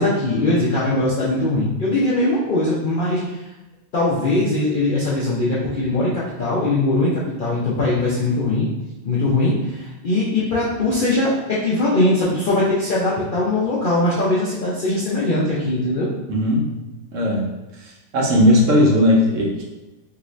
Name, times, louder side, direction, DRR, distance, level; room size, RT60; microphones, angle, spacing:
voice 1, 0.0-3.2 3.9-8.7 9.0-16.1, left 2 dB, 60° left, -7 dB, 0.5 m, -20 dB
voice 2, 16.3-16.8 17.1-17.5 17.8-19.6, left 1 dB, 70° right, -2 dB, 1.0 m, -17 dB
2.8 x 2.6 x 3.0 m, 1.0 s
omnidirectional pair, 1.4 m